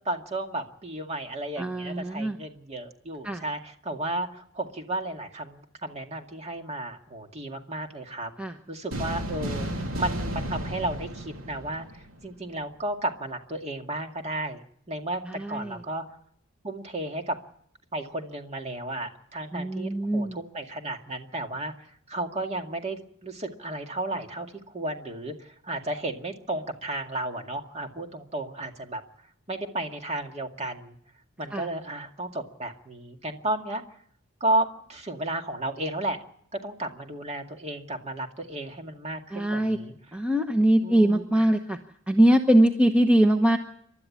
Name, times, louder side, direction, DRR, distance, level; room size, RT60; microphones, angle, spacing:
voice 1, 0.0-8.3 8.7-14.6 14.9-16.0 16.6-17.4 17.9-29.0 29.5-31.0 31.4-33.8 34.4-36.2 36.5-39.9 40.8-41.2, right 1 dB, 30° right, 4 dB, 2.1 m, -33 dB
voice 2, 1.6-2.4 3.2-3.4 8.4-8.5 15.2-15.8 19.5-20.4 31.5-31.7 39.3-39.8 40.1-41.8 42.1-43.6, right 1 dB, 5° right, 5 dB, 1.0 m, -22 dB
sound 1, 8.9-12.3, equal, 90° right, 3.2 m, -33 dB
29.0 x 12.5 x 8.6 m, 0.68 s
head